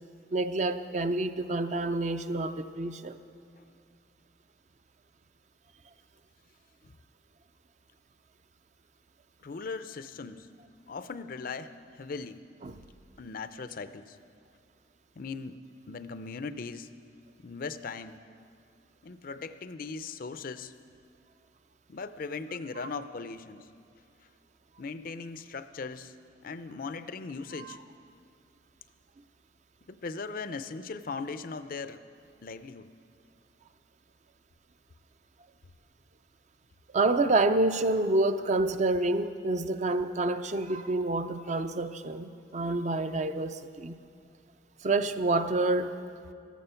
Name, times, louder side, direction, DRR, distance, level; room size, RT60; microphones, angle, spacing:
voice 1, 0.3-3.2 12.6-12.8 27.6-27.7 36.9-43.9 44.8-46.0, right 2 dB, 40° right, 10 dB, 0.5 m, -28 dB
voice 2, 9.4-10.5 10.9-12.4 13.2-14.2 15.2-15.6 15.9-16.9 17.4-18.2 19.0-20.7 21.9-23.7 24.8-26.2 26.4-27.8 29.9-32.0 32.4-32.9, left 4 dB, 55° left, 12 dB, 0.5 m, -39 dB
14.5 x 13.5 x 5.7 m, 2.4 s
head